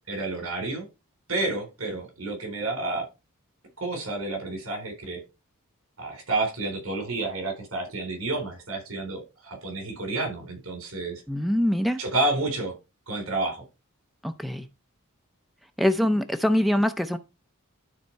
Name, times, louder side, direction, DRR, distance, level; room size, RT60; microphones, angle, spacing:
voice 1, 0.1-0.9 1.3-3.1 3.8-5.2 6.0-11.2 12.0-12.7 13.1-13.6, right 2 dB, 70° right, 4.1 m, -30 dB
voice 2, 11.3-12.0 14.2-14.7 15.8-17.2, left 1 dB, ahead, 0.6 m, -23 dB
12.0 x 4.3 x 4.6 m
head